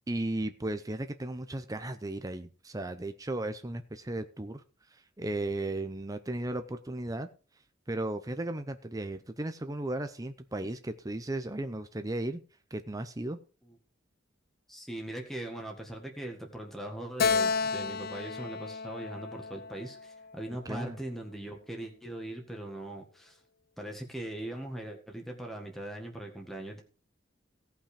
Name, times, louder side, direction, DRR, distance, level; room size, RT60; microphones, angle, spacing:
voice 1, 0.1-4.6 4.9-7.3 7.9-12.4 12.7-13.4 20.6-21.0, right 1 dB, 20° right, 8 dB, 0.6 m, -35 dB
voice 2, 14.7-23.4 23.8-26.8, right 1 dB, ahead, 1 dB, 1.7 m, -40 dB
Keyboard (musical), 17.2-20.6, left 5 dB, 50° left, 0.4 m, -32 dB
17.0 x 5.8 x 5.0 m, 0.36 s
head